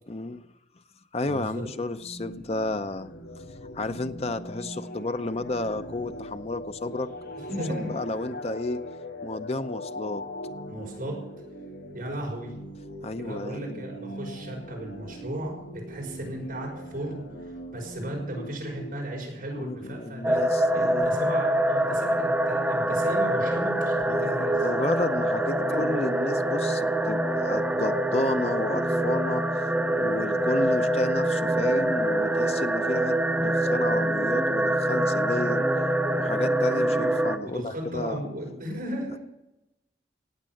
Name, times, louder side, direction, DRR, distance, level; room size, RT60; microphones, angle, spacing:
voice 1, 0.1-0.5 1.1-3.1 3.7-7.1 7.7-8.8 9.2-10.2 13.0-13.8 19.6-21.1 24.1-29.4 29.9-35.7 36.2-38.2, left 2 dB, 35° left, 10 dB, 0.6 m, -32 dB
voice 2, 1.3-1.6 7.5-7.9 10.7-11.2 11.9-12.5 13.2-20.4 20.7-24.7 25.6-25.8 37.3-39.2, right 1 dB, 50° right, -1 dB, 5.8 m, -35 dB
sound 1, 2.0-18.9, equal, 90° left, 4.1 m, -41 dB
sound 2, 20.2-37.4, right 1 dB, 10° right, 0.7 m, -25 dB
18.0 x 7.5 x 7.7 m, 0.92 s
head